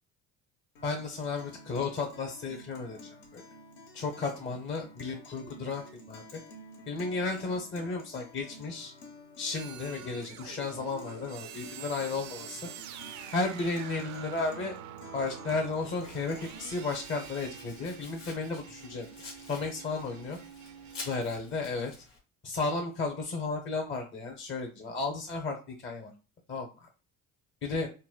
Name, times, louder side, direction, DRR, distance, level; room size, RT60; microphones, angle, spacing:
Guitar, 0.7-16.8, left 2 dB, 60° left, 1.0 m, -51 dB
voice 1, 0.8-3.4 3.9-6.4 6.9-8.9 9.4-12.7 13.3-14.8 15.1-19.1 19.5-20.4 21.0-21.9 22.4-26.1 26.5-26.9 27.6-27.9, left 3 dB, 25° left, 1 dB, 0.7 m, -34 dB
sound 1, 9.5-21.4, right 9 dB, 40° right, 0.5 m, -46 dB
Domestic sounds home sounds, 15.8-22.2, left 3 dB, 85° left, 1.0 m, -49 dB
4.0 x 2.1 x 2.2 m, 0.34 s
hypercardioid pair, 65°, 45 cm